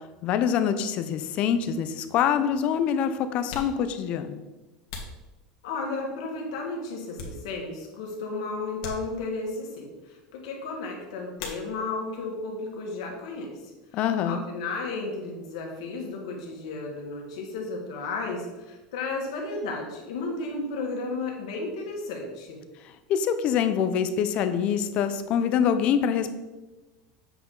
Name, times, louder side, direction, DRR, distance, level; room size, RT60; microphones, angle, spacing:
voice 1, 0.2-4.4 13.9-14.4 23.1-26.3, left 8 dB, 40° left, 10 dB, 0.6 m, -25 dB
sound 1, 3.4-6.0 6.5-7.9 8.2-8.3 8.8-9.6 11.3-12.1 12.4-13.1 13.4-15.5, left 4 dB, 65° left, 1.5 m, -43 dB
voice 2, 5.6-13.5 13.9-22.6, left 3 dB, 85° left, 0 dB, 1.9 m, -33 dB
7.9 x 4.9 x 3.9 m, 1.1 s
supercardioid pair, 160°, 3 cm